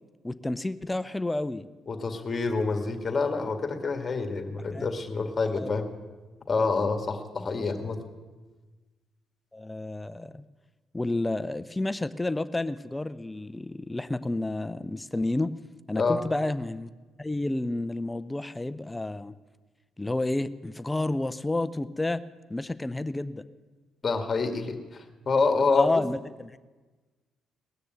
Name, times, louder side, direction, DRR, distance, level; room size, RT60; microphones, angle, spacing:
voice 1, 0.2-1.7 4.5-4.9 5.5-5.7 9.5-10.4 10.9-15.5 15.9-16.9 17.2-19.4 20.0-22.2 22.5-23.4 25.7-26.6, left 2 dB, 15° left, 14 dB, 0.5 m, -30 dB
voice 2, 1.9-5.9 6.5-8.0 16.0-16.2 24.0-26.0, left 4 dB, 35° left, 6 dB, 2.0 m, -27 dB
19.5 x 6.7 x 9.0 m, 1.3 s
cardioid pair, 90°, 0 cm